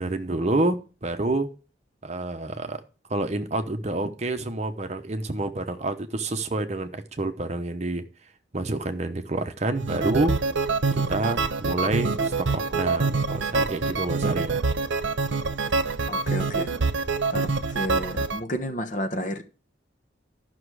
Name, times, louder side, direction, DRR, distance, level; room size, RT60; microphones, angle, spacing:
voice 1, 0.0-1.5 2.0-2.8 3.1-8.0 8.5-10.4 10.9-14.6, right 2 dB, 35° right, 0.9 m, -28 dB
sound 1, 9.8-18.4, right 4 dB, 85° right, 0.8 m, -26 dB
voice 2, 16.1-16.7 17.3-19.4, equal, 45° left, 1.2 m, -31 dB
12.5 x 6.1 x 4.8 m
head